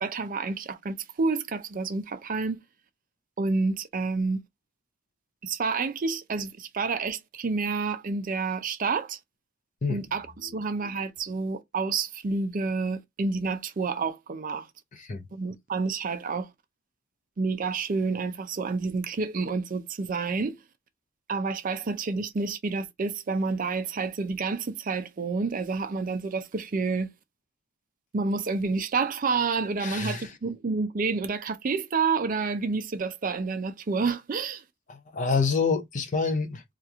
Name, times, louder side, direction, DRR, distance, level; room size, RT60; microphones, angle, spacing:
voice 1, 0.0-2.6 3.4-4.4 5.4-9.2 9.9-14.7 15.3-16.5 17.4-20.6 21.3-27.1 28.1-34.6, right 4 dB, 40° right, 0.4 m, -29 dB
voice 2, 29.8-30.3 34.9-36.6, left 4 dB, 35° left, 0.5 m, -27 dB
2.9 x 2.4 x 3.5 m
head